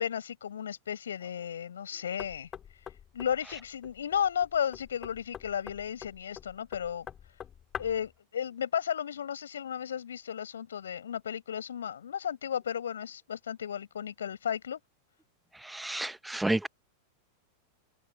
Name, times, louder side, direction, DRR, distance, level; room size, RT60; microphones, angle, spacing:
voice 1, 0.0-2.5 3.1-7.1 7.8-14.8, left 8 dB, 65° left, 5.2 m, -34 dB
Knock, 2.2-8.1, left 9 dB, 25° left, 4.2 m, -46 dB
voice 2, 15.6-16.7, right 2 dB, 5° right, 1.0 m, -30 dB
open air
figure-of-eight pair, 90°, 0 cm